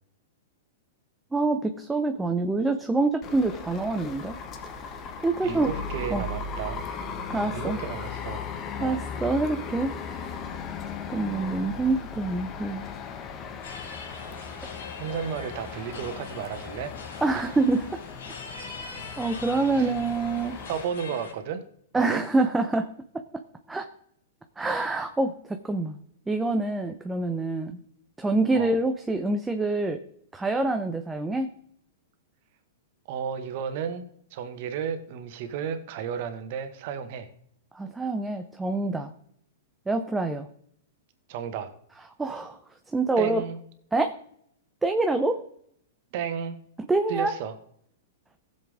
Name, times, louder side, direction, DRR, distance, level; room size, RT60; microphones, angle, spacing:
voice 1, 1.3-4.4 5.2-5.7 6.1-6.2 7.3-7.8 8.8-10.3 11.1-12.8 17.2-18.0 19.2-20.6 21.9-22.9 23.7-23.9 24.6-26.0 26.3-27.8 28.2-30.0 30.3-31.5 37.7-39.1 39.9-40.5 42.2-42.6 42.9-43.4 43.9-44.1 44.8-45.4 46.9-47.3, right 2 dB, 10° right, 6 dB, 0.8 m, -26 dB
sound 1, 3.2-20.8, left 5 dB, 30° left, 1.4 m, -37 dB
voice 2, 5.4-6.8 7.5-8.5 8.8-9.0 15.0-16.9 17.3-17.5 19.7-19.9 20.7-21.6 21.9-22.2 28.5-28.8 33.1-37.3 41.3-41.7 43.2-43.6 46.1-46.6 47.1-47.5, right 7 dB, 55° right, 9 dB, 1.6 m, -33 dB
sound 2, 13.6-21.3, left 4 dB, 80° left, 5.0 m, -42 dB
16.0 x 7.4 x 3.6 m, 0.68 s
hypercardioid pair, 130°, 0 cm